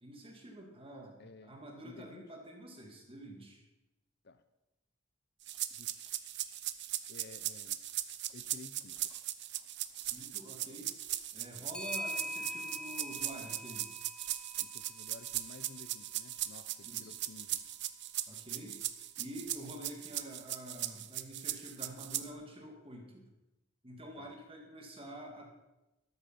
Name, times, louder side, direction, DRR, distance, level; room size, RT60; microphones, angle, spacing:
voice 1, 0.0-3.6 9.9-10.9 11.3-13.9 16.8-17.2 18.3-18.8 19.2-23.2 23.8-25.5, right 1 dB, 30° right, 1 dB, 2.3 m, -48 dB
voice 2, 1.2-2.2 4.2-4.4 5.7-6.8 7.1-7.8 8.3-9.1 14.6-17.6 24.2-24.3, left 3 dB, 55° left, 11 dB, 0.7 m, -54 dB
Clock, 5.5-5.6 6.1-6.2 9.0-9.2 11.7-16.0, left 1 dB, 5° left, 0.5 m, -44 dB
sound 1, 5.5-22.3, right 13 dB, 60° right, 0.8 m, -39 dB
13.5 x 13.0 x 5.8 m, 0.97 s
head